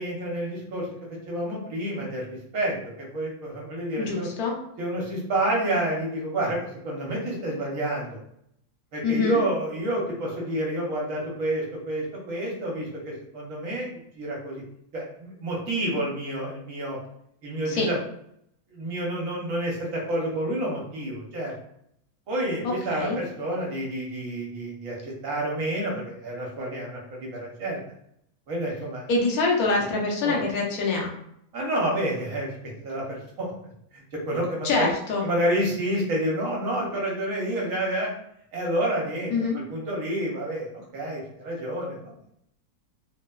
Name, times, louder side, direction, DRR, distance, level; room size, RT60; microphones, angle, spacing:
voice 1, 0.0-4.3 4.8-8.1 8.9-13.9 14.2-14.6 14.9-17.0 17.4-18.0 18.7-21.5 22.3-27.8 28.5-29.1 30.2-30.4 31.5-34.9 35.2-38.1 38.5-42.1, right 1 dB, 65° right, -3 dB, 1.0 m, -29 dB
voice 2, 4.0-4.5 9.0-9.4 17.7-17.9 22.6-23.2 29.1-31.1 34.6-35.2 39.3-39.6, left 3 dB, 70° left, -1 dB, 1.1 m, -25 dB
3.0 x 2.1 x 2.2 m, 0.73 s
omnidirectional pair, 1.7 m